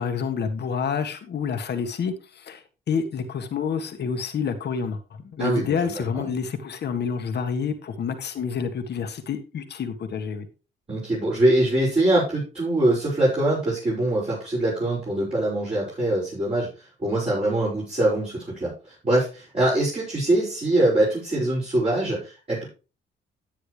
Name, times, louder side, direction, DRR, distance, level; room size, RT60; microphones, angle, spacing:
voice 1, 0.0-5.0 5.2-10.5, left 6 dB, 60° left, 6 dB, 1.7 m, -28 dB
voice 2, 5.9-6.3 10.9-22.6, right 1 dB, 30° right, -7 dB, 6.1 m, -23 dB
10.5 x 9.1 x 3.3 m, 0.33 s
cardioid pair, 90°, 20 cm